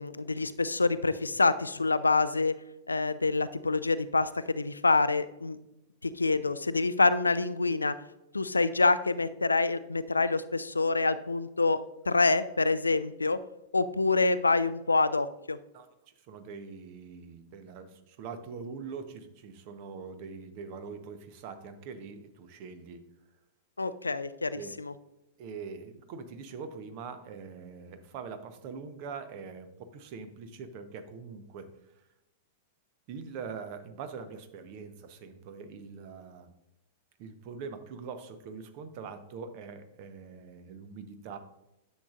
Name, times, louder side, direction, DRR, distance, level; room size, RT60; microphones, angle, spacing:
voice 1, 0.0-2.5 2.9-5.6 6.0-7.9 8.3-11.8 12.1-13.4 13.7-15.6 23.8-24.9, left 3 dB, 80° left, 15 dB, 0.4 m, -26 dB
voice 2, 15.7-23.0 24.5-24.8 25.4-32.0 33.1-36.5 37.2-41.4, right 5 dB, 45° right, 9 dB, 0.9 m, -43 dB
10.0 x 7.2 x 2.5 m, 0.89 s
figure-of-eight pair, 95°, 0 cm